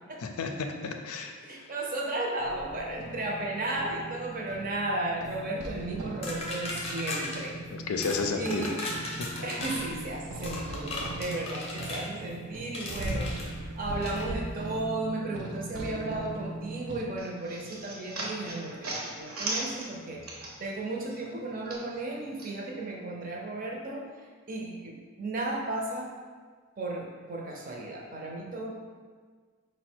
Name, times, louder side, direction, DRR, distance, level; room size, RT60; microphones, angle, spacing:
voice 1, 0.2-1.3 7.7-8.6 9.0-9.3, left 4 dB, 90° left, 5 dB, 0.5 m, -32 dB
voice 2, 1.4-7.5 8.3-8.9 9.4-20.2 20.6-24.1 24.5-26.1 26.8-28.7, right 2 dB, 40° right, -1 dB, 0.6 m, -34 dB
sound 1, 2.4-17.0, right 2 dB, 90° right, 0.5 m, -39 dB
sound 2, 6.2-7.4 8.0-8.2 8.5-9.9 10.4-12.1 12.7-13.5 14.0-14.3, left 2 dB, 25° left, 0.6 m, -36 dB
sound 3, 17.2-20.8 21.1-22.5, right 2 dB, 70° right, 0.9 m, -37 dB
4.8 x 2.1 x 4.4 m, 1.5 s
head